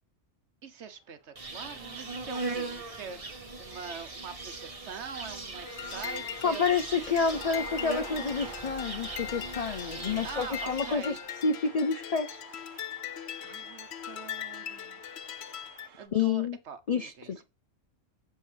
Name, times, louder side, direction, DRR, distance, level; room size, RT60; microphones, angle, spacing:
voice 1, 0.6-7.8 10.2-11.2 13.4-15.0 16.0-17.4, right 6 dB, 60° right, 1.2 m, -44 dB
sound 1, 0.8-1.3 1.6-2.1 3.0-3.2 3.6-5.8 6.2-16.1, right 7 dB, 80° right, 1.3 m, -50 dB
Insect, 1.4-11.2, right 3 dB, 30° right, 1.2 m, -40 dB
sound 2, 5.6-15.9, left 10 dB, 65° left, 0.8 m, -40 dB
voice 2, 6.4-12.4 16.1-16.6 16.9-17.4, left 5 dB, 80° left, 0.3 m, -29 dB
7.4 x 6.7 x 3.3 m
omnidirectional pair, 1.3 m